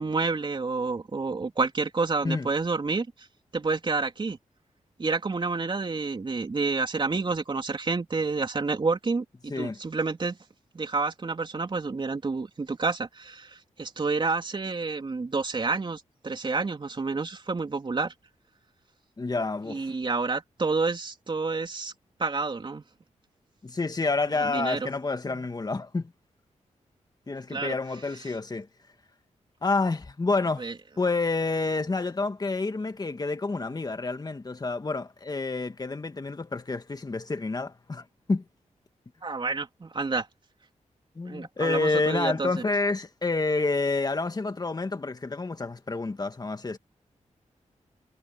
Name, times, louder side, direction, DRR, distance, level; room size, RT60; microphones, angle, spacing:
voice 1, 0.0-3.1 3.5-4.4 5.0-10.4 10.7-18.1 19.7-21.9 22.2-22.8 24.4-24.9 25.3-25.4 27.5-27.7 30.6-30.7 39.2-40.3 41.3-42.6, right 4 dB, 40° right, 3.7 m, -29 dB
voice 2, 19.2-19.9 23.6-26.1 27.3-28.7 29.6-30.6 31.0-38.4 41.2-46.8, left 3 dB, 30° left, 1.9 m, -28 dB
wide cardioid pair, 90°, 13 cm